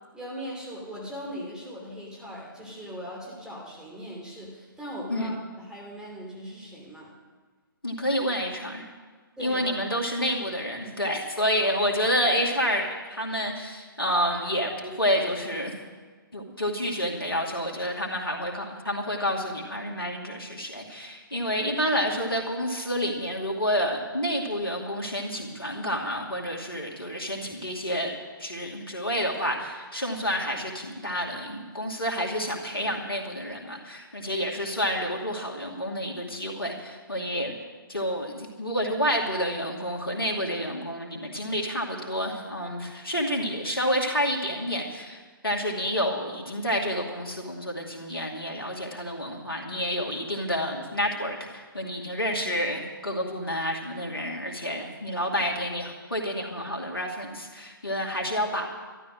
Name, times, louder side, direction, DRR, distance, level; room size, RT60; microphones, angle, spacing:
voice 1, 0.1-7.1 9.4-9.7, equal, 5° right, -4 dB, 3.1 m, -39 dB
voice 2, 7.8-8.8 9.4-15.7 16.3-37.6 37.9-58.7, equal, 85° left, 0 dB, 2.5 m, -29 dB
12.5 x 12.0 x 6.4 m, 1.4 s
figure-of-eight pair, 130°, 12 cm